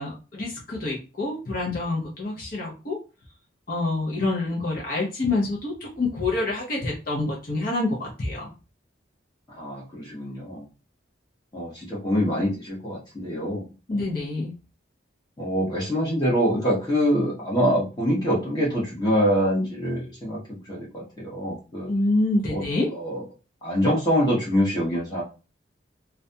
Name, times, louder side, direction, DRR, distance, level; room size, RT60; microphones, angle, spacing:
voice 1, 0.0-3.0 3.7-8.5 13.9-14.5 21.9-22.9, left 2 dB, 45° left, -3 dB, 0.6 m, -27 dB
voice 2, 9.5-10.6 11.5-13.6 13.9-14.1 15.4-21.9 22.5-22.6 22.9-23.2 23.6-25.2, equal, 20° left, -6 dB, 0.9 m, -25 dB
2.4 x 2.2 x 2.6 m, 0.31 s
head